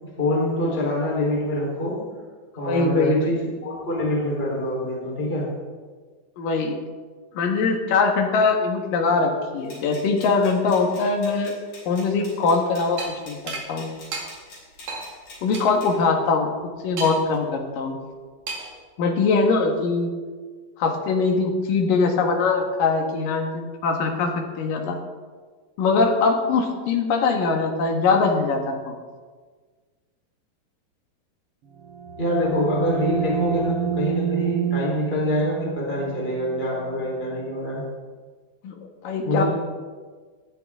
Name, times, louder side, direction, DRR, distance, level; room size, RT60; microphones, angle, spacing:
voice 1, 0.2-2.0 2.6-5.5 32.2-37.8 39.2-39.4, left 1 dB, 15° left, -4 dB, 3.9 m, -25 dB
voice 2, 2.6-3.2 6.4-6.7 7.3-11.6 11.9-13.0 13.3-13.9 15.4-16.5 16.8-18.0 19.0-20.1 20.8-25.0 25.8-29.0 38.6-39.4, left 4 dB, 65° left, 3 dB, 3.2 m, -22 dB
sound 1, 9.6-16.0, left 2 dB, 50° left, 6.0 m, -46 dB
sound 2, 13.0-13.1 13.5-13.7 14.1-14.3 14.9-15.0 15.5-15.7 17.0-17.4 18.5-18.8, right 4 dB, 55° right, 3.5 m, -32 dB
sound 3, 31.7-37.3, right 8 dB, 75° right, 1.3 m, -29 dB
19.0 x 13.0 x 3.7 m, 1.5 s
omnidirectional pair, 4.3 m